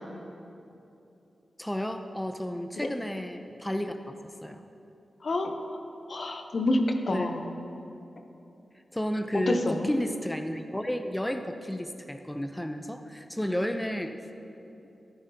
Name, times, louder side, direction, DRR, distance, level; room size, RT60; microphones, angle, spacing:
voice 1, 1.6-4.1 4.4-4.6 7.1-7.5 8.9-14.1, equal, 10° left, 7 dB, 0.6 m, -32 dB
voice 2, 5.2-5.5 6.1-7.5 9.5-9.9, left 1 dB, 65° left, 5 dB, 0.8 m, -27 dB
13.0 x 11.0 x 2.9 m, 2.9 s
cardioid pair, 40°, 0 cm